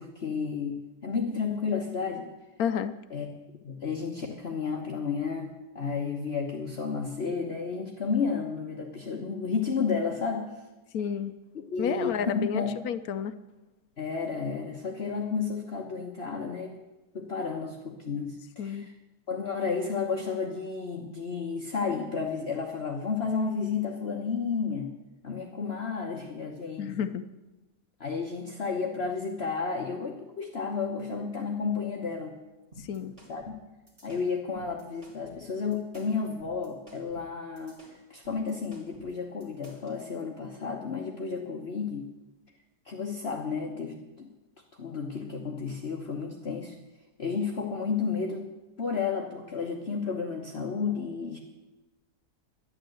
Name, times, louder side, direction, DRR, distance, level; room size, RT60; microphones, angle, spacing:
voice 1, 0.0-2.3 3.1-3.3 3.6-10.5 11.7-12.8 14.0-16.8 17.1-18.9 19.3-24.9 25.2-26.9 28.0-32.4 33.3-33.6 34.0-42.1 42.8-44.3 44.8-46.7 47.2-48.5 48.8-51.4, left 5 dB, 40° left, 0 dB, 1.2 m, -32 dB
voice 2, 2.6-3.0 10.9-11.3 11.8-13.3 18.6-18.9 26.8-27.2 32.8-33.1, left 8 dB, 70° left, 11 dB, 1.0 m, -31 dB
sound 1, 32.7-40.0, equal, 30° right, 3.3 m, -52 dB
11.5 x 11.0 x 7.8 m, 1.1 s
omnidirectional pair, 1.8 m